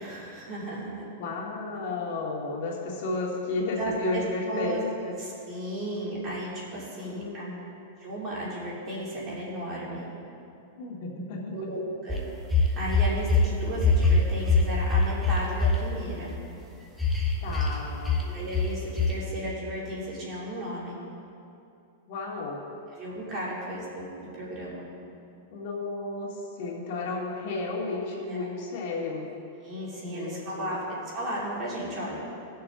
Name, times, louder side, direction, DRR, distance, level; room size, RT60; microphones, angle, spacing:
voice 1, 0.0-1.0 3.8-4.8 5.2-7.4 8.0-10.0 11.5-12.2 12.8-16.3 18.2-21.0 22.9-24.8 28.3-28.5 29.6-30.9 31.1-32.2, right 1 dB, 30° right, -6 dB, 3.0 m, -34 dB
voice 2, 1.2-5.2 7.0-7.6 10.7-11.5 17.4-18.2 22.1-22.6 25.5-26.3 26.6-29.3 30.0-30.7, left 3 dB, 55° left, -3 dB, 2.2 m, -33 dB
sound 1, 12.1-13.5 13.8-15.7 17.0-17.7 18.0-18.2 18.5-18.7 19.0-19.1, left 4 dB, 10° right, 1.0 m, -22 dB
18.0 x 6.8 x 3.8 m, 2.7 s
supercardioid pair, 155°, 0 cm